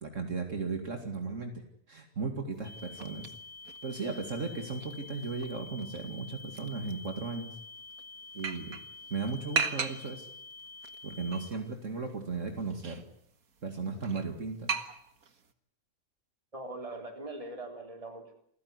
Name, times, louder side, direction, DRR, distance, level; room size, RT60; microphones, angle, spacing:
voice 1, 0.0-1.5 1.9-3.3 3.8-7.5 8.3-8.8 9.1-10.3 11.0-13.0 13.6-14.8, right 4 dB, 60° right, 4 dB, 2.7 m, -36 dB
sound 1, 2.5-15.5, right 5 dB, 75° right, 2.0 m, -40 dB
sound 2, 2.6-11.5, left 3 dB, 65° left, 4.7 m, -48 dB
voice 2, 16.5-18.3, right 2 dB, 25° right, 3 dB, 3.9 m, -41 dB
27.5 x 15.0 x 9.7 m, 0.70 s
omnidirectional pair, 1.5 m